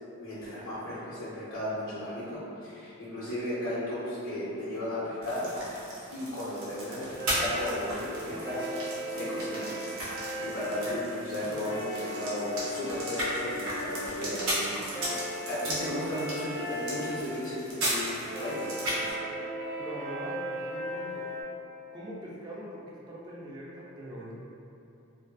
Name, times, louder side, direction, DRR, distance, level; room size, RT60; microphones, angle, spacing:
voice 1, 0.2-5.5 6.1-7.1 7.4-8.7 9.2-9.7 10.4-18.7, left 1 dB, 75° left, -11 dB, 0.5 m, -35 dB
sound 1, 5.2-19.1, right 1 dB, 90° right, 0.7 m, -36 dB
sound 2, 7.1-21.4, equal, 70° right, 1.2 m, -38 dB
voice 2, 19.8-21.2 21.9-24.4, right 1 dB, 20° right, -6 dB, 0.3 m, -41 dB
2.5 x 2.2 x 2.2 m, 2.7 s
head